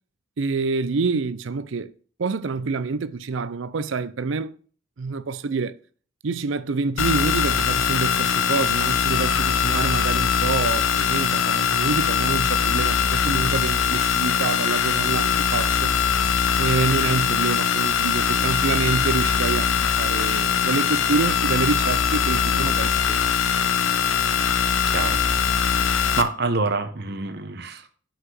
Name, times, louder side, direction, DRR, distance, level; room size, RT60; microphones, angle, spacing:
voice 1, 0.4-1.9 2.2-4.6 5.0-5.8 6.2-15.9 16.6-23.3, right 4 dB, 75° right, 0.5 m, -27 dB
sound 1, 7.0-26.2, left 7 dB, 85° left, 0.7 m, -22 dB
voice 2, 24.9-25.2 25.9-27.9, right 3 dB, 55° right, 0.9 m, -27 dB
5.9 x 5.5 x 6.0 m
head